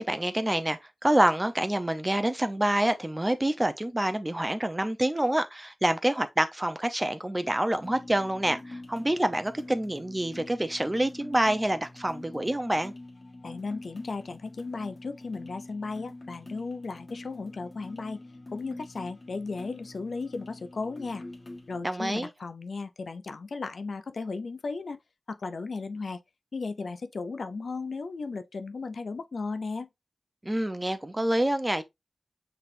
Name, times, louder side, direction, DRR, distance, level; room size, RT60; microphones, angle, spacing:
voice 1, 0.0-12.9 21.8-22.3 30.4-31.8, right 1 dB, 20° right, 0.7 m, -27 dB
sound 1, 7.8-21.8, left 2 dB, 60° left, 1.4 m, -45 dB
voice 2, 13.4-18.2 18.5-21.2 21.7-25.0 25.3-26.2 26.5-29.9, left 4 dB, 80° left, 0.4 m, -35 dB
5.8 x 3.4 x 2.7 m
cardioid pair, 45°, 0 cm